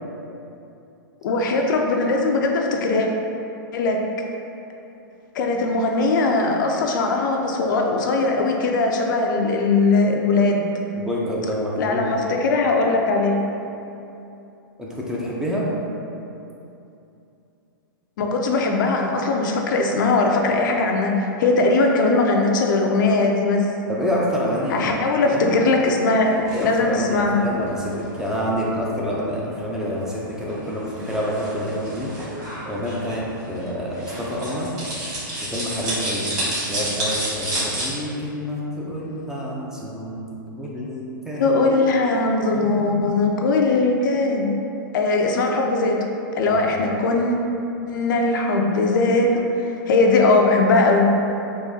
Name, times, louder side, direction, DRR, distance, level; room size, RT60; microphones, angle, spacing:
voice 1, 1.2-3.1 3.7-4.0 5.3-10.6 11.8-13.4 18.2-21.1 21.4-23.6 24.7-27.4 41.4-44.5 44.9-46.0 46.3-47.4 47.9-51.1, left 3 dB, 60° left, 1 dB, 0.4 m, -20 dB
voice 2, 10.9-12.1 14.8-15.7 23.9-24.9 25.2-25.6 26.5-32.1 32.6-34.7 35.4-36.3 36.7-41.5 46.5-46.8, equal, 5° right, -5 dB, 0.4 m, -27 dB
sound 1, 26.2-37.9, right 1 dB, 25° right, 1.5 m, -31 dB
3.7 x 2.7 x 2.6 m, 2.8 s
hypercardioid pair, 125°, 12 cm